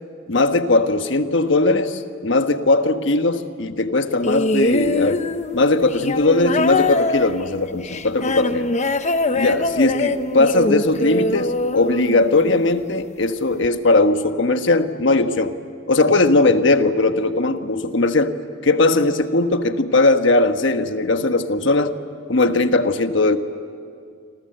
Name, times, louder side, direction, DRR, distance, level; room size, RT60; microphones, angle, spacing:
voice 1, 0.3-5.2 5.5-8.7 9.3-15.5 15.9-18.3 18.6-21.9 22.3-23.4, left 2 dB, 65° left, 8 dB, 1.3 m, -19 dB
sound 1, 4.2-12.6 13.6-13.7, left 2 dB, 35° left, 0.9 m, -23 dB
28.5 x 26.0 x 7.8 m, 2.4 s
head